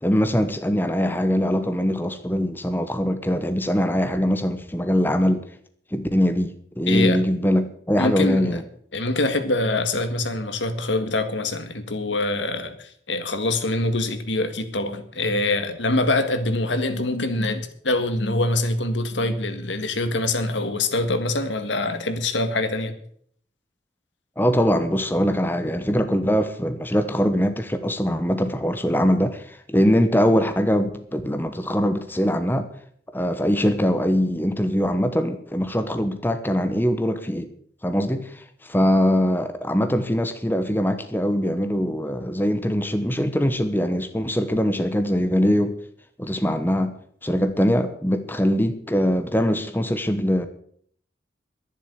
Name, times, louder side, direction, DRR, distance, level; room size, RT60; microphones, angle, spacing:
voice 1, 0.0-5.4 5.9-8.6 24.4-32.7 33.1-37.5 37.8-45.8 46.2-46.9 47.2-50.5, equal, 10° left, 1.1 m, -22 dB
voice 2, 6.9-7.2 8.0-8.6 8.9-22.9, left 2 dB, 90° left, 1.8 m, -24 dB
11.0 x 10.5 x 8.2 m
head